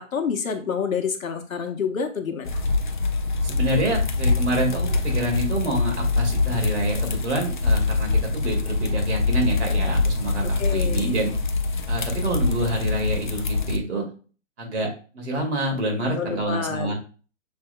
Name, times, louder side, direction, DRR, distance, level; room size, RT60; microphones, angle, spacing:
voice 1, 0.0-2.6 10.4-11.1 16.2-16.9, left 6 dB, 80° left, 5 dB, 1.1 m, -28 dB
sound 1, 2.4-13.8, left 3 dB, 40° left, 0.4 m, -24 dB
voice 2, 3.4-11.3 11.9-14.0 14.6-16.9, right 1 dB, 55° right, 1 dB, 2.3 m, -27 dB
6.6 x 3.5 x 2.3 m, 0.37 s
hypercardioid pair, 150°, 40 cm